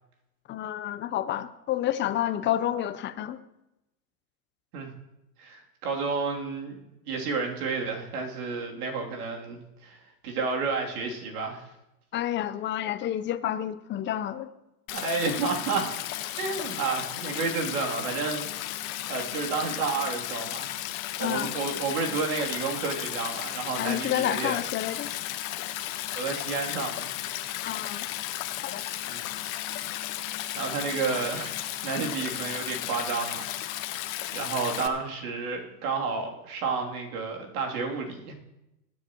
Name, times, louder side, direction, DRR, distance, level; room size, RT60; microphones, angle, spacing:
voice 1, 0.5-3.4 12.1-14.5 21.2-21.5 23.8-25.1 27.6-28.1 28.6-28.8, left 12 dB, 25° left, 11 dB, 0.7 m, -29 dB
voice 2, 5.4-10.0 10.2-11.7 14.9-15.9 16.4-18.8 19.1-20.7 21.2-24.6 26.1-27.1 29.0-29.3 30.6-33.9 34.3-38.3, right 4 dB, 70° right, 0 dB, 3.0 m, -31 dB
Stream, 14.9-34.9, left 14 dB, 60° left, 1.3 m, -34 dB
20.5 x 9.7 x 3.0 m, 0.90 s
hypercardioid pair, 105°, 46 cm